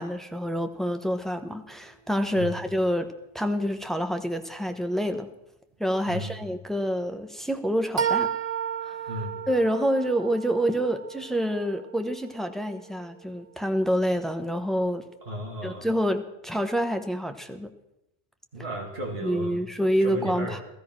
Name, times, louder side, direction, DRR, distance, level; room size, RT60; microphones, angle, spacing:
voice 1, 0.0-3.1 3.3-5.3 5.8-8.3 8.9-9.0 9.5-15.0 15.6-17.7 19.2-20.6, equal, ahead, 7 dB, 0.9 m, -27 dB
sound 1, 0.9-1.2 8.0-13.7, right 8 dB, 45° right, 0.7 m, -33 dB
voice 2, 6.1-6.4 9.1-9.4 15.2-15.9 18.5-19.6 20.0-20.6, right 1 dB, 70° right, 0 dB, 2.5 m, -34 dB
17.0 x 13.5 x 6.0 m, 0.88 s
omnidirectional pair, 1.1 m